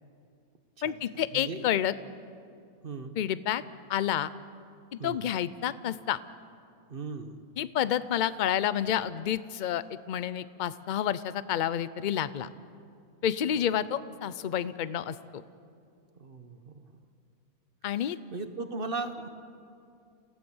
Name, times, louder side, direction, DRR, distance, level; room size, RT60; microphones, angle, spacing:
voice 1, 0.8-1.9 3.2-3.6 3.9-4.3 5.0-6.2 7.6-12.5 13.2-15.4 17.8-18.2, left 10 dB, 60° left, 16 dB, 0.5 m, -29 dB
voice 2, 1.3-1.6 2.8-3.1 5.0-5.2 6.9-7.4 13.6-13.8 16.2-16.9 18.3-19.3, right 3 dB, 45° right, 9 dB, 1.1 m, -37 dB
27.0 x 16.5 x 7.1 m, 2.4 s
omnidirectional pair, 1.5 m